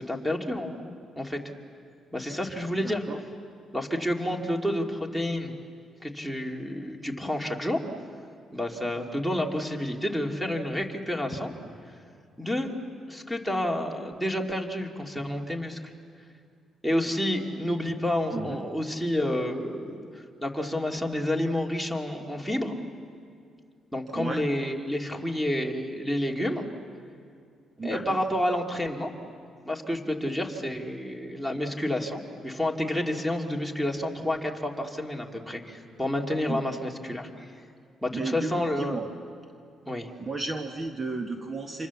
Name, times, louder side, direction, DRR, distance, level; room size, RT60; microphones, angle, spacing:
voice 1, 0.0-1.4 2.1-3.0 3.7-5.5 6.0-7.8 8.5-11.5 12.4-12.7 13.1-15.8 16.8-22.7 23.9-26.6 27.8-29.1 29.7-37.5 38.0-39.0 39.9-40.1, left 1 dB, ahead, 2 dB, 2.7 m, -29 dB
voice 2, 2.8-3.2 18.3-18.6 24.1-24.4 27.8-28.2 36.5-36.6 38.1-39.0 40.2-41.9, right 3 dB, 30° right, 4 dB, 1.6 m, -33 dB
29.0 x 27.0 x 7.2 m, 2.4 s
cardioid pair, 90°, 0 cm